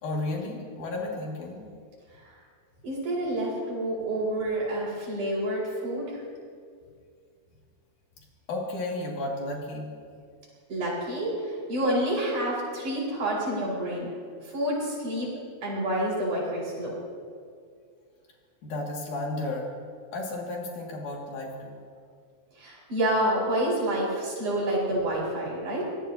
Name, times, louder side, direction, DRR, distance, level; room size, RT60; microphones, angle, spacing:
voice 1, 0.0-1.6 8.5-9.9 18.6-19.7 20.1-21.8, left 2 dB, 85° left, -1 dB, 3.9 m, -33 dB
voice 2, 2.8-6.2 10.7-14.1 14.5-15.3 15.6-16.9 22.6-25.8, right 1 dB, 75° right, -5 dB, 6.5 m, -28 dB
23.5 x 19.0 x 2.9 m, 2.2 s
omnidirectional pair, 3.5 m